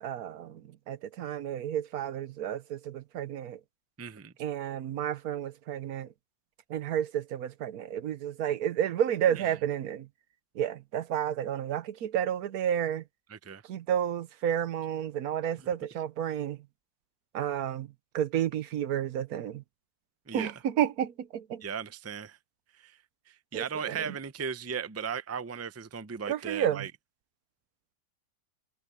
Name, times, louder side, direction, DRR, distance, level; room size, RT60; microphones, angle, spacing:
voice 1, 0.0-3.6 4.4-6.1 6.7-10.1 10.5-13.0 13.7-16.6 17.3-17.9 18.1-19.6 20.3-21.6 23.5-24.1 26.3-26.9, right 10 dB, 90° right, 1.3 m, -31 dB
voice 2, 4.0-4.3 9.3-9.4 13.3-13.6 15.6-15.7 20.3-20.5 21.6-22.4 22.8-23.0 23.3-26.9, right 7 dB, 20° right, 0.4 m, -37 dB
omnidirectional pair, 1.5 m